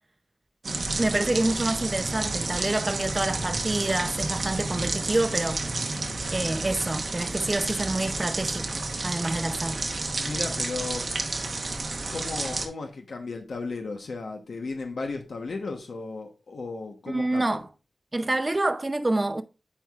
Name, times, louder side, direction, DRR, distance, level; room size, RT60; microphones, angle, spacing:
sound 1, 0.6-12.7, right 3 dB, 60° right, 0.9 m, -30 dB
voice 1, 1.0-5.6 6.3-9.8 17.1-17.7 18.1-19.4, right 2 dB, 30° right, 0.5 m, -27 dB
voice 2, 10.2-11.1 12.1-17.6, left 3 dB, 80° left, 0.9 m, -35 dB
8.7 x 4.6 x 2.3 m
wide cardioid pair, 80°, 0 cm